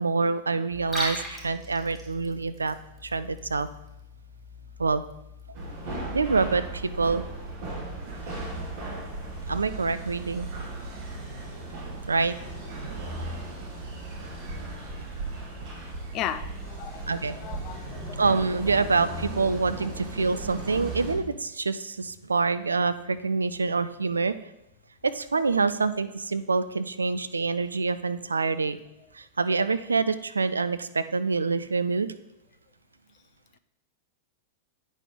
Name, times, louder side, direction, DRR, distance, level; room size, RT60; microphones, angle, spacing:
voice 1, 0.0-2.8 3.0-3.7 4.8-5.0 6.1-7.2 9.5-10.5 12.1-12.4 17.1-17.4 18.2-24.4 25.0-28.8 29.1-32.1, right 4 dB, 75° right, 13 dB, 0.3 m, -26 dB
Liquid, 0.7-5.7, equal, 5° right, 2.4 m, -39 dB
sound 1, 5.5-21.1, right 2 dB, 50° right, 2.4 m, -36 dB
voice 2, 16.1-18.2 19.8-19.9, left 10 dB, 35° left, 12 dB, 0.4 m, -36 dB
8.8 x 6.1 x 3.7 m, 0.86 s
figure-of-eight pair, 95°, 0 cm